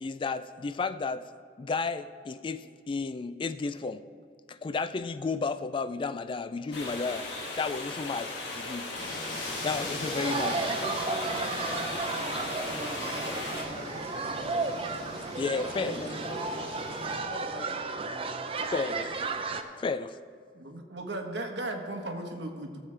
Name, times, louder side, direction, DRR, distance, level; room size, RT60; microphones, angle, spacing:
voice 1, 0.0-1.3 1.6-4.0 4.5-7.3 7.6-8.9 9.6-10.6 15.4-16.2 17.0-17.2 18.7-19.2 19.8-20.2, left 4 dB, 30° left, 12 dB, 0.3 m, -32 dB
sound 1, 6.7-13.6, left 2 dB, 70° left, 1.7 m, -37 dB
sound 2, 8.9-17.2, left 1 dB, 50° left, 3.0 m, -40 dB
voice 2, 9.7-14.8 15.4-16.4 17.2-18.3, equal, 15° left, -14 dB, 3.2 m, -42 dB
sound 3, 10.1-19.6, right 4 dB, 30° right, 0.5 m, -34 dB
voice 3, 15.8-16.2 20.5-22.8, right 1 dB, 75° right, 3 dB, 1.2 m, -37 dB
17.0 x 7.4 x 3.3 m, 2.1 s
head